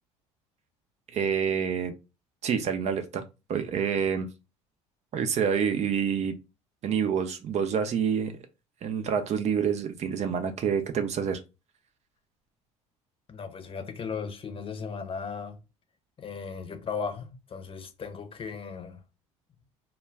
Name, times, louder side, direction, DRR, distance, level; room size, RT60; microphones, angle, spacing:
voice 1, 1.1-1.9 2.4-3.2 3.5-4.3 5.1-6.3 6.8-8.4 8.8-11.4, right 7 dB, 45° right, 0.5 m, -27 dB
voice 2, 13.3-15.6 16.2-19.0, left 5 dB, 35° left, 0.7 m, -36 dB
2.2 x 2.1 x 3.4 m
hypercardioid pair, 65°, 16 cm